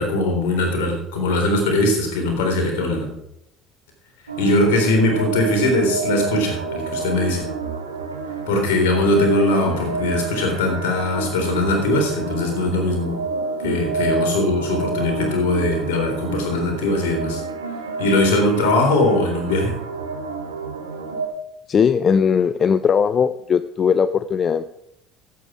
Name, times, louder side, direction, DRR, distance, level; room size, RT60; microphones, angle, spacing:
voice 1, 0.0-3.1 4.4-7.5 8.5-13.2 13.6-17.4 18.0-19.8, left 1 dB, 70° left, 2 dB, 3.8 m, -20 dB
sound 1, 4.3-21.3, right 4 dB, 85° right, 1.2 m, -29 dB
voice 2, 21.7-24.7, left 6 dB, 40° left, 13 dB, 0.5 m, -19 dB
14.5 x 8.7 x 4.8 m, 0.77 s
figure-of-eight pair, 60°, 0 cm